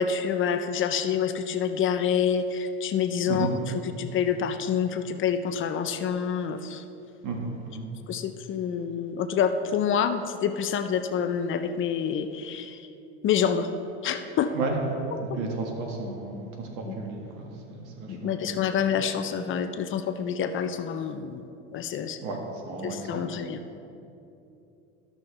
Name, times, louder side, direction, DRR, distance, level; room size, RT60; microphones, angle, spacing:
voice 1, 0.0-6.8 8.1-12.9 13.2-13.7 14.0-14.5 16.8-17.0 18.1-21.4 21.7-22.2 22.8-23.6, left 7 dB, 35° left, 9 dB, 0.5 m, -27 dB
voice 2, 7.2-7.9 14.5-14.8 15.2-18.8 22.2-22.4 22.7-23.4, right 3 dB, 65° right, 1 dB, 1.8 m, -33 dB
13.5 x 6.2 x 3.2 m, 2.8 s
hypercardioid pair, 90°, 34 cm